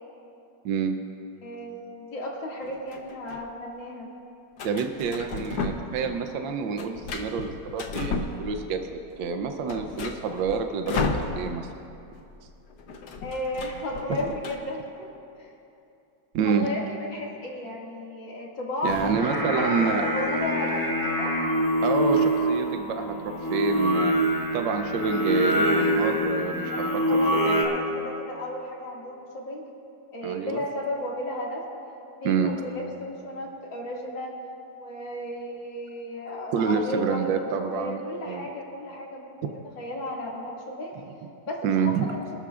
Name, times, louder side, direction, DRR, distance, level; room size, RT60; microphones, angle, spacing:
voice 1, 0.6-1.0 4.6-11.7 14.1-14.3 16.3-16.7 18.8-20.0 21.8-24.1 24.5-27.7 30.2-30.6 32.2-32.5 36.5-38.4 41.6-42.1, right 5 dB, 75° right, 6 dB, 1.4 m, -28 dB
voice 2, 1.4-4.1 13.2-14.9 15.4-15.5 16.4-21.3 26.7-29.7 30.1-31.6 32.2-34.4 34.8-39.3 39.8-40.9 41.5-42.2, left 1 dB, 80° left, -3 dB, 2.9 m, -34 dB
sound 1, 2.6-3.4 4.6-6.1 6.4-8.8 9.2-9.3 9.5-11.8 12.0-12.2 12.5-14.6, left 3 dB, 60° left, 1.4 m, -33 dB
Singing, 18.9-27.6, equal, 10° left, 1.3 m, -25 dB
26.0 x 12.5 x 2.4 m, 2.7 s
omnidirectional pair, 2.0 m